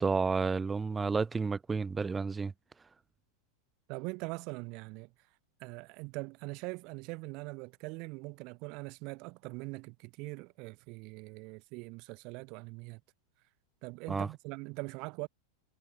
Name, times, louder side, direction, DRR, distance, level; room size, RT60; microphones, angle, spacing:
voice 1, 0.0-2.5 14.1-14.3, right 4 dB, 15° right, 0.3 m, -31 dB
voice 2, 3.9-5.1 5.6-13.0 13.8-15.3, right 27 dB, 45° right, 0.7 m, -42 dB
figure-of-eight pair, 90°, 0 cm